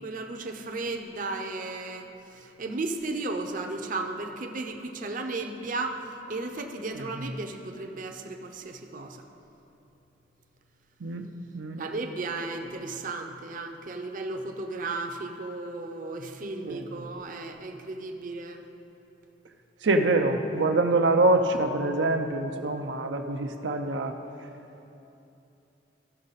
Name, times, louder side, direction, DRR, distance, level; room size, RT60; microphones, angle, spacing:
voice 1, 0.0-6.0 6.3-9.3 11.8-18.6, right 2 dB, 50° right, 4 dB, 0.7 m, -34 dB
voice 2, 19.8-24.1, right 2 dB, 85° right, 4 dB, 0.6 m, -25 dB
15.0 x 6.4 x 4.1 m, 2.9 s
head